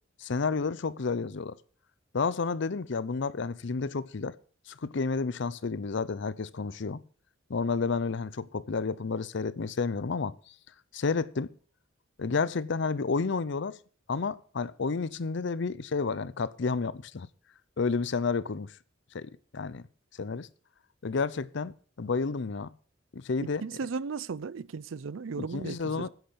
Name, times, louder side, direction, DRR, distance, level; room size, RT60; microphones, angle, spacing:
voice 1, 0.2-1.6 2.1-4.4 4.7-7.0 7.5-10.5 10.9-11.5 12.2-13.8 14.1-17.3 17.8-18.8 19.1-19.8 20.2-20.5 21.0-22.7 23.1-23.6 25.4-26.1, left 4 dB, 65° left, 0.6 m, -31 dB
voice 2, 23.6-26.1, right 5 dB, 75° right, 0.5 m, -36 dB
10.5 x 8.0 x 6.8 m
head